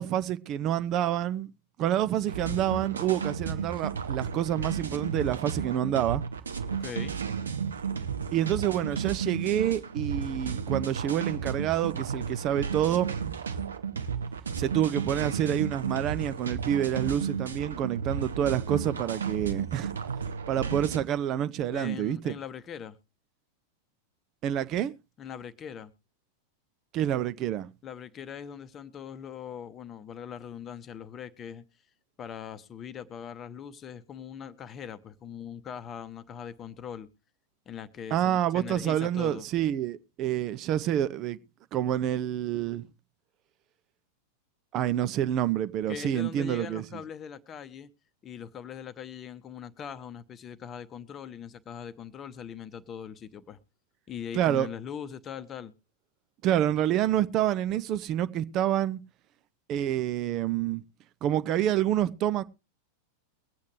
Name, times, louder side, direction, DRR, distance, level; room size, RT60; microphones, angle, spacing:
voice 1, 0.0-1.5 1.8-6.2 8.3-13.2 14.6-19.9 20.5-22.3 24.4-24.9 26.9-27.7 38.1-41.4 41.7-42.9 44.7-46.8 54.3-54.7 56.4-59.0 59.7-60.8 61.2-62.4, right 11 dB, 35° right, 0.5 m, -28 dB
sound 1, 2.3-21.0, right 6 dB, 70° right, 1.1 m, -33 dB
voice 2, 6.7-7.2 21.7-23.0 25.2-25.9 27.8-31.6 32.2-37.1 37.7-39.5 45.9-47.9 48.2-53.6 54.1-55.7, left 8 dB, 25° left, 0.9 m, -41 dB
22.5 x 8.4 x 3.2 m
figure-of-eight pair, 90°, 0 cm